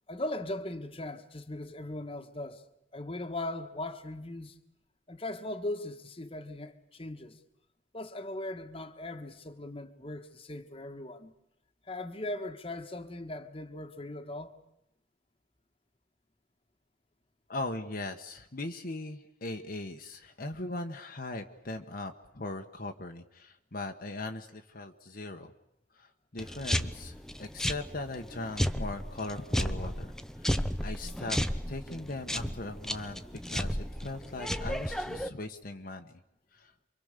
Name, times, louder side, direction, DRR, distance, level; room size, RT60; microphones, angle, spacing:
voice 1, 0.1-2.6 2.9-4.6 5.1-7.4 7.9-11.3 11.9-14.6, left 1 dB, 30° left, 1.6 m, -39 dB
voice 2, 17.5-25.5 25.9-31.4 31.7-36.2 36.5-36.7, left 2 dB, 50° left, 1.3 m, -39 dB
sound 1, 26.4-35.3, equal, 5° left, 0.9 m, -33 dB
28.5 x 24.5 x 6.7 m
head